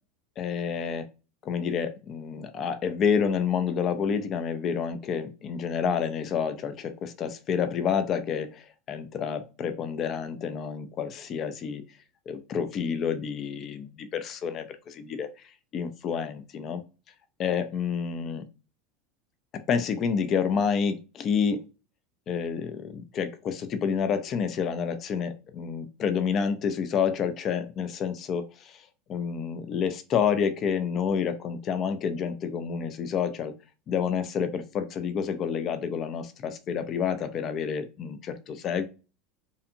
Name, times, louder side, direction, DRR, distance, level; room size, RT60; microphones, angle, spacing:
voice 1, 0.4-1.1 1.4-11.8 12.3-15.3 15.7-16.8 17.4-18.4 19.5-21.6 22.3-33.6 33.9-38.8, left 7 dB, 40° left, 9 dB, 0.4 m, -29 dB
2.7 x 2.4 x 2.6 m, 0.32 s
hypercardioid pair, 80°, 0 cm